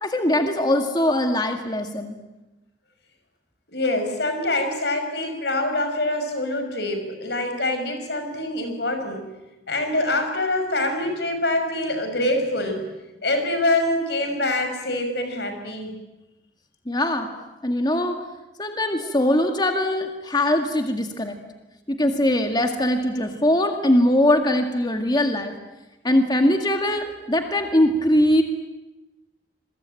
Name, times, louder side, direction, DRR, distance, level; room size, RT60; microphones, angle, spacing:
voice 1, 0.0-2.2 16.9-17.3 17.6-18.2 18.6-21.4 21.9-25.5 26.0-28.4, left 1 dB, 25° left, 5 dB, 1.9 m, -21 dB
voice 2, 3.7-9.2 9.7-12.9 13.2-15.9, left 1 dB, 65° left, 6 dB, 6.2 m, -25 dB
28.0 x 22.5 x 9.1 m, 1.0 s
head